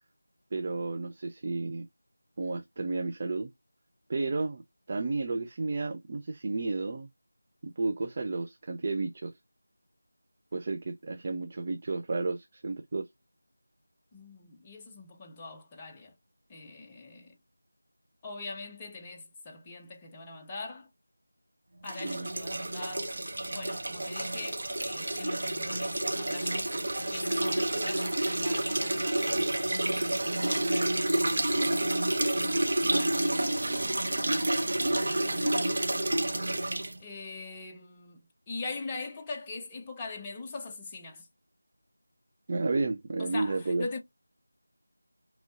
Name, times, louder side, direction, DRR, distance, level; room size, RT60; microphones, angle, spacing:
voice 1, 0.5-1.9 2.4-3.5 4.1-4.6 4.9-7.1 7.6-9.3 10.5-13.1 22.1-22.3 42.5-43.9, right 3 dB, 30° right, 0.4 m, -32 dB
voice 2, 14.1-16.1 16.5-17.4 18.2-20.9 21.8-23.1 23.5-26.6 27.1-32.1 32.9-33.7 34.2-35.8 37.0-38.2 38.5-41.3 43.2-44.0, left 3 dB, 15° left, 0.6 m, -43 dB
sound 1, 21.8-37.0, right 1 dB, 45° right, 0.8 m, -29 dB
5.1 x 3.0 x 2.4 m
figure-of-eight pair, 170°, 0 cm